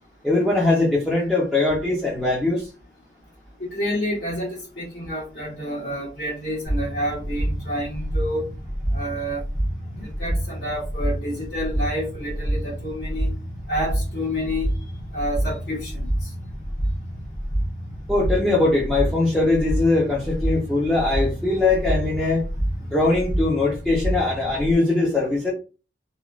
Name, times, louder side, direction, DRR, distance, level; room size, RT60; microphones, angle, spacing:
voice 1, 0.2-2.7 18.1-22.5 22.9-25.5, left 2 dB, ahead, 0.6 m, -21 dB
voice 2, 3.6-8.5 8.9-9.4 9.9-13.3 13.7-14.7 15.1-16.3, equal, 70° left, 1.3 m, -29 dB
sound 1, 6.7-24.7, right 1 dB, 45° left, 1.1 m, -28 dB
3.0 x 2.3 x 2.4 m
head